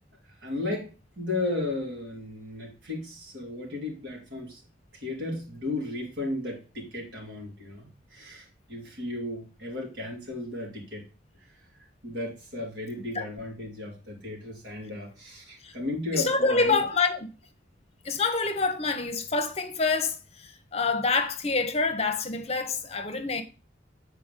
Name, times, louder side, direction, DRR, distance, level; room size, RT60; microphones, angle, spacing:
voice 1, 0.4-4.6 4.9-11.0 11.7-16.8 18.1-18.2, left 2 dB, 70° right, 3.0 m, -35 dB
voice 2, 16.1-17.3 18.0-20.2 20.7-23.4, left 4 dB, 35° left, 0.9 m, -26 dB
7.7 x 4.6 x 3.7 m
head